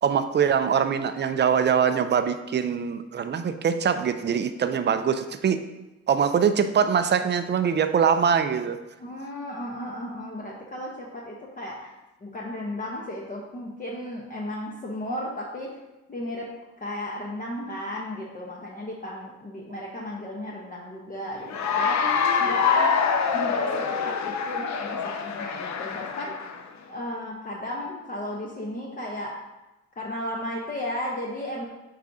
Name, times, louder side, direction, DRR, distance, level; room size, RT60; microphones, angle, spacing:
voice 1, 0.0-5.6 6.1-8.8, right 7 dB, 35° right, 10 dB, 0.5 m, -23 dB
voice 2, 9.0-11.9 12.2-15.7 16.1-16.5 16.8-22.1 22.4-23.1 23.3-26.5 26.9-29.3 30.0-31.7, left 1 dB, 30° left, -2 dB, 0.9 m, -34 dB
Cheering / Applause, 21.5-26.6, left 6 dB, 65° left, 0.7 m, -25 dB
7.4 x 4.8 x 2.7 m, 1.1 s
cardioid pair, 90°, 30 cm